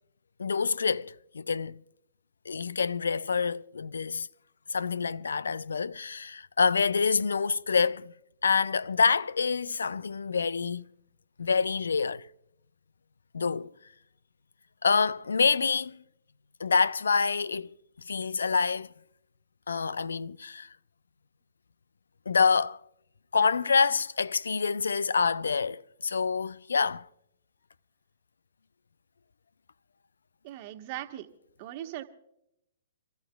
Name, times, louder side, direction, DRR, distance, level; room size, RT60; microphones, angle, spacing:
voice 1, 0.4-1.8 2.5-4.3 4.7-8.1 8.4-10.9 11.4-12.2 13.3-13.7 14.8-16.0 16.6-17.7 18.1-18.9 19.7-20.7 22.3-22.8 23.3-27.0, left 5 dB, 75° left, 0.4 m, -27 dB
voice 2, 30.4-31.3 31.6-32.0, right 13 dB, 40° right, 1.4 m, -39 dB
29.0 x 13.5 x 2.3 m
figure-of-eight pair, 120°, 0 cm